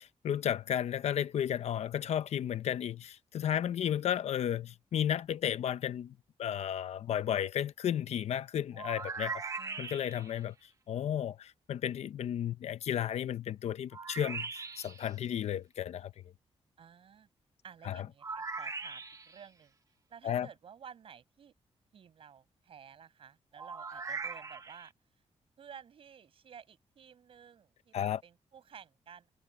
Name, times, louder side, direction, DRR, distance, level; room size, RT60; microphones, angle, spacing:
voice 1, 0.0-9.4 9.8-10.5 10.9-16.1 17.8-18.1 20.2-20.5 27.9-28.2, left 10 dB, 75° left, 0.8 m, -33 dB
sound 1, 8.7-10.4 13.9-15.1 18.2-19.4 23.6-24.9, right 4 dB, 30° right, 1.0 m, -40 dB
voice 2, 9.6-10.1 16.8-17.3 17.6-19.7 20.1-21.5 21.9-24.9 25.6-29.3, right 7 dB, 55° right, 6.0 m, -53 dB
wide cardioid pair, 180°, 11 cm